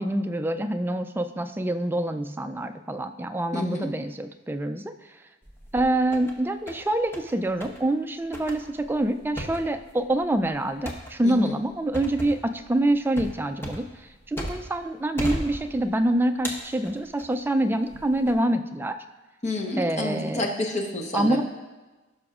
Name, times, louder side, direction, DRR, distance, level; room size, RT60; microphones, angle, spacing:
voice 1, 0.0-4.9 5.7-13.8 14.3-18.9 19.8-20.5 21.1-21.4, right 1 dB, 10° right, 7 dB, 0.3 m, -26 dB
voice 2, 3.5-3.9 11.2-11.6 19.4-21.4, left 2 dB, 35° left, 1 dB, 1.0 m, -29 dB
sound 1, 5.4-6.3 6.7-7.3 7.6-7.8 8.3-14.8 15.2-16.0 16.4-17.4 17.9-18.3, equal, 10° left, 1.0 m, -36 dB
16.5 x 6.0 x 2.4 m, 1.2 s
head